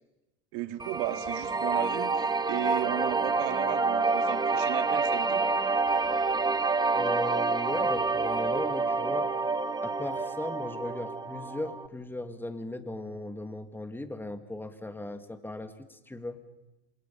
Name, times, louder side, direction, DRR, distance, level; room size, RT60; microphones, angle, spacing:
voice 1, 0.5-5.5, right 14 dB, 65° right, 9 dB, 2.1 m, -35 dB
sound 1, 0.8-11.9, right 4 dB, 15° right, 1.2 m, -28 dB
voice 2, 6.9-9.3 9.8-16.4, left 2 dB, 5° left, 9 dB, 1.9 m, -37 dB
28.0 x 27.0 x 5.6 m, 0.99 s
supercardioid pair, 125°, 33 cm